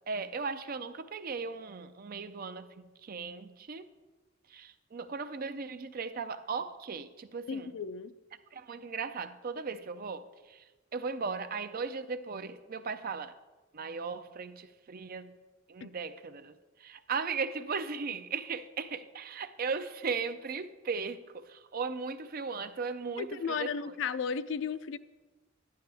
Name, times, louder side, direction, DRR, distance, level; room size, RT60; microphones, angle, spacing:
voice 1, 0.1-3.9 4.5-7.7 8.5-13.4 13.7-15.3 15.7-23.9, right 5 dB, 50° right, 0.5 m, -37 dB
voice 2, 7.5-8.1 15.8-15.9 23.2-25.0, left 6 dB, 70° left, 0.4 m, -34 dB
11.5 x 10.5 x 3.4 m
head